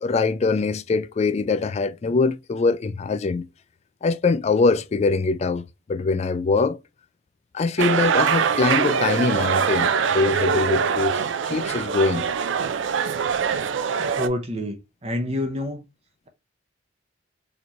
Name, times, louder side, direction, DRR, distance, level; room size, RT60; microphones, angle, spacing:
voice 1, 0.0-3.5 4.0-6.8 7.5-11.2 11.5-12.3, left 4 dB, 35° left, 0.3 m, -23 dB
sound 1, 7.8-14.3, right 7 dB, 75° right, 0.4 m, -23 dB
voice 2, 14.2-15.8, left 1 dB, 30° right, 0.7 m, -28 dB
4.3 x 2.9 x 2.5 m
head